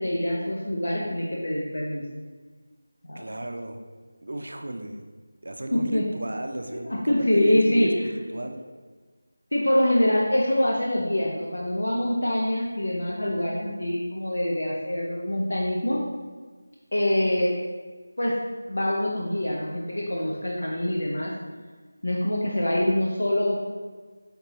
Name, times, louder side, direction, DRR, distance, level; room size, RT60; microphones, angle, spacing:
voice 1, 0.0-2.0 3.0-3.2 5.7-6.1 6.7-7.9 9.5-16.0 16.9-17.5 18.2-18.4 18.7-21.3 22.0-23.6, left 1 dB, 90° left, -3 dB, 0.7 m, -25 dB
voice 2, 3.2-3.8 4.2-5.0 5.4-8.6, right 1 dB, 70° right, 5 dB, 0.5 m, -34 dB
5.1 x 2.9 x 3.0 m, 1.4 s
figure-of-eight pair, 175°, 0 cm